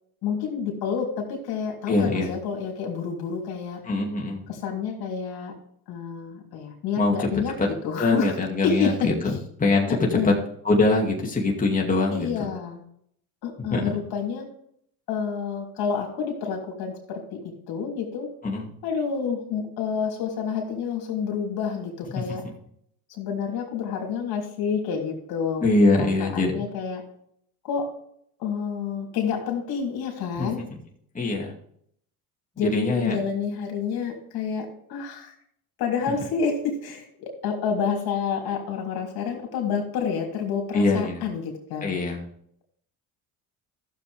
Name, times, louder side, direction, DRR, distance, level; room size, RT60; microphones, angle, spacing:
voice 1, 0.2-3.8 4.5-5.5 5.9-8.3 8.6-9.1 10.1-10.4 12.1-12.8 13.4-14.5 15.1-18.3 18.8-22.4 23.1-25.7 25.9-27.0 27.6-27.9 28.4-30.6 32.6-35.3 35.8-41.9, left 6 dB, 70° left, 1 dB, 3.2 m, -29 dB
voice 2, 1.9-2.3 3.8-4.4 7.0-7.3 7.6-7.7 8.0-10.3 10.6-12.3 13.6-14.0 18.4-18.7 25.6-26.6 30.4-30.5 31.1-31.5 32.6-33.2 40.7-41.2 41.8-42.2, left 2 dB, 20° left, -1 dB, 2.4 m, -23 dB
14.0 x 7.2 x 3.5 m, 0.68 s
supercardioid pair, 85°, 39 cm